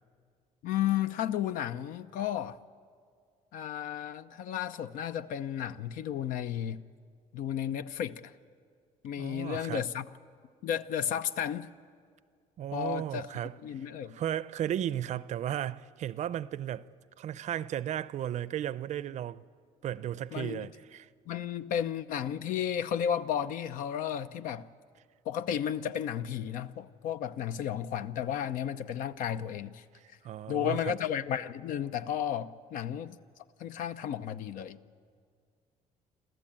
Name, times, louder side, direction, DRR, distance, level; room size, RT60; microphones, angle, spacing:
voice 1, 0.6-2.6 3.5-6.8 7.3-8.3 9.0-10.1 10.6-11.7 12.7-13.3 13.6-14.2 20.3-20.7 21.3-24.7 25.3-29.8 30.5-33.2 33.6-34.8, left 9 dB, 80° left, 0.7 m, -33 dB
voice 2, 9.2-9.8 12.6-13.5 14.1-16.9 17.2-19.4 19.8-21.1 30.0-31.0, right 10 dB, 60° right, 0.5 m, -35 dB
26.5 x 13.5 x 8.8 m
cardioid pair, 110°, 14 cm